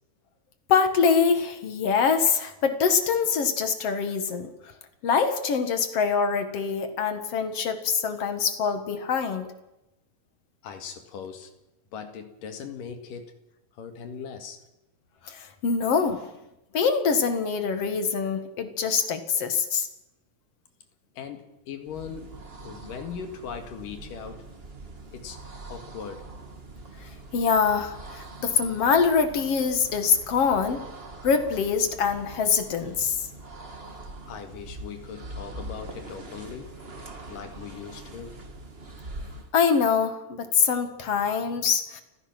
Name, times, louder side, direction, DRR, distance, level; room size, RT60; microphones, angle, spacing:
voice 1, 0.7-4.5 5.0-9.5 15.3-16.2 16.7-19.9 27.3-30.8 31.2-33.3 39.5-42.0, left 6 dB, 50° left, 9 dB, 2.2 m, -24 dB
voice 2, 10.6-11.5 11.9-13.4 13.7-14.6 21.1-22.3 22.6-24.5 25.1-25.4 25.7-26.3 34.3-36.8 37.3-38.3, left 7 dB, 70° left, 7 dB, 3.4 m, -39 dB
sound 1, 21.8-39.6, right 2 dB, 35° right, 0.9 m, -43 dB
29.5 x 15.5 x 6.1 m, 0.92 s
omnidirectional pair, 4.1 m